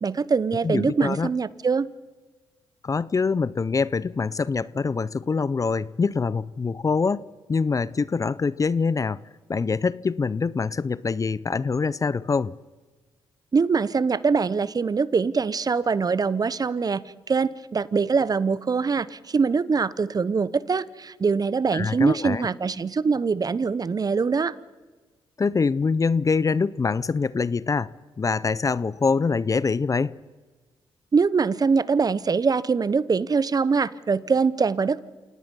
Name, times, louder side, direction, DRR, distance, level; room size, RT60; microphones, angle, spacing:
voice 1, 0.0-1.9 13.5-17.0 17.3-24.5 31.1-35.0, right 5 dB, 40° right, 0.8 m, -23 dB
voice 2, 0.6-1.3 2.8-9.2 9.5-12.5 21.7-22.5 25.4-27.9 28.2-30.2, left 4 dB, 35° left, 0.6 m, -24 dB
27.0 x 18.0 x 5.5 m
supercardioid pair, 55°, 10 cm